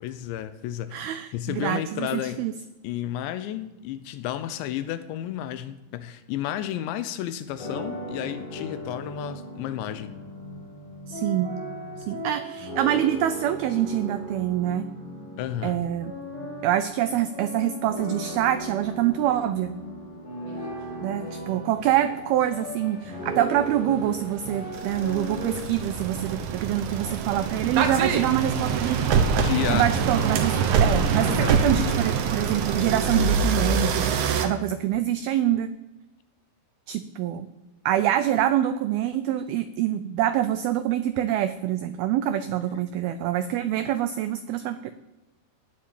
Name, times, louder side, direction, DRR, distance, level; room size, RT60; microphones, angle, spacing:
voice 1, 0.0-2.4 2.8-10.1 15.4-15.8 29.4-29.9 31.3-31.7, left 11 dB, 80° left, 12 dB, 3.1 m, -32 dB
voice 2, 0.9-2.5 11.1-11.5 12.0-14.9 15.6-16.1 16.6-19.8 21.0-29.2 29.7-34.1 34.4-35.7 36.9-37.5 37.9-44.9, right 11 dB, 85° right, 11 dB, 2.2 m, -25 dB
sound 1, 7.6-25.7, equal, 55° left, 8.5 m, -37 dB
sound 2, 22.7-23.0 23.6-34.5, right 6 dB, 65° right, 2.4 m, -25 dB
19.0 x 7.5 x 8.9 m, 1.0 s
omnidirectional pair, 5.2 m